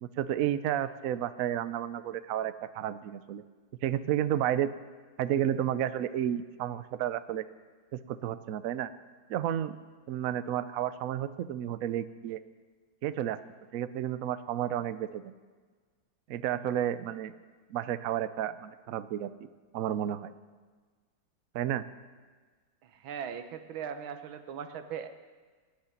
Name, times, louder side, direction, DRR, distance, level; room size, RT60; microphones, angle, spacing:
voice 1, 0.0-3.4 3.8-4.7 5.2-7.4 7.9-8.9 9.3-9.8 10.1-12.4 13.0-13.4 13.7-15.3 16.3-17.3 17.7-19.3 19.7-20.3 21.5-21.8, right 11 dB, 70° right, 13 dB, 0.8 m, -31 dB
voice 2, 23.0-25.1, right 8 dB, 90° right, 9 dB, 1.8 m, -39 dB
19.0 x 6.7 x 9.7 m, 1.5 s
omnidirectional pair, 2.1 m